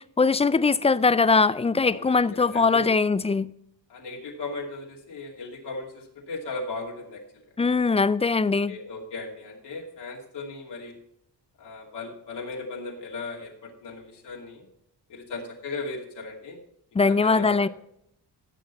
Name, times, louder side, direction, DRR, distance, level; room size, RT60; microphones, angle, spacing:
voice 1, 0.2-3.5 7.6-8.8 16.9-17.7, left 4 dB, 15° left, 0.3 m, -21 dB
voice 2, 1.8-2.9 3.9-7.2 8.7-10.9 11.6-14.6 15.1-16.6 17.0-17.7, left 3 dB, 75° left, 2.7 m, -37 dB
15.0 x 6.4 x 4.1 m
cardioid pair, 100°, 41 cm